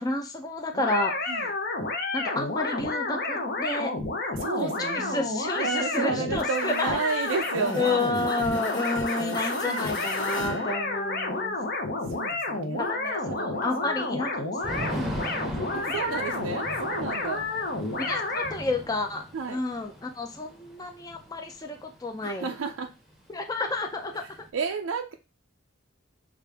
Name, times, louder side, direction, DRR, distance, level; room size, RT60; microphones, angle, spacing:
voice 1, 0.0-1.1 2.1-3.9 4.6-7.0 7.8-11.6 12.8-15.2 15.6-16.2 18.0-22.5 23.3-24.2, left 2 dB, 20° left, 0.5 m, -30 dB
sound 1, 0.7-18.6, left 2 dB, 50° left, 0.9 m, -30 dB
voice 2, 4.3-5.3 5.6-8.1 9.3-10.0 12.1-13.0 13.3-14.3 15.7-17.5 19.3-19.6 22.2-22.9 24.5-25.1, right 5 dB, 80° right, 0.4 m, -32 dB
sound 2, 6.4-11.7, equal, 70° left, 1.2 m, -40 dB
Thunder / Rain, 14.6-22.5 22.8-22.9 23.1-24.5, equal, ahead, 0.8 m, -40 dB
6.1 x 2.5 x 3.4 m
head